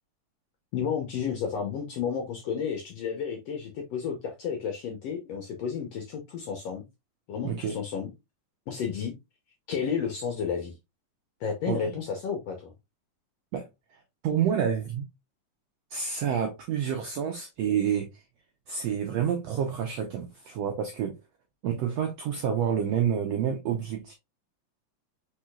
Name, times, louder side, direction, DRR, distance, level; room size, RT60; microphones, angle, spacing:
voice 1, 0.7-6.8 7.3-8.1 8.7-9.1 9.7-10.7 11.4-12.7, left 7 dB, 70° left, 1.5 m, -32 dB
voice 2, 7.4-7.8 11.7-11.8 13.5-13.7 13.9-15.1 15.9-18.2 18.7-21.2 21.6-24.1, right 8 dB, 80° right, 1.5 m, -28 dB
4.9 x 4.3 x 2.3 m
omnidirectional pair, 3.9 m